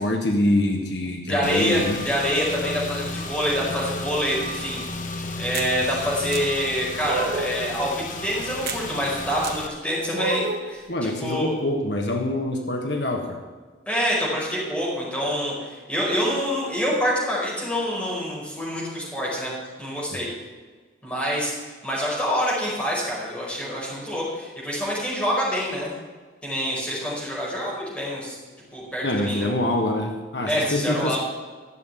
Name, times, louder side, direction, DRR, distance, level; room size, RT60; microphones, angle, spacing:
voice 1, 0.0-2.0 10.9-13.4 20.1-20.2 29.0-31.2, left 1 dB, 70° left, 3 dB, 1.4 m, -25 dB
voice 2, 1.3-4.8 5.4-7.9 8.2-10.8 11.2-11.5 13.9-19.5 19.8-20.3 21.0-21.5 21.8-25.9 26.4-28.3 28.7-29.5 30.5-31.2, equal, 5° left, -6 dB, 5.1 m, -26 dB
Car / Engine, 1.4-9.7, left 2 dB, 45° left, 1.0 m, -33 dB
sound 1, 5.5-5.7 6.3-6.4 7.0-7.6 8.7-8.8 9.4-9.6 10.1-10.7, right 4 dB, 60° right, 1.7 m, -29 dB
14.0 x 7.4 x 9.0 m, 1.4 s
head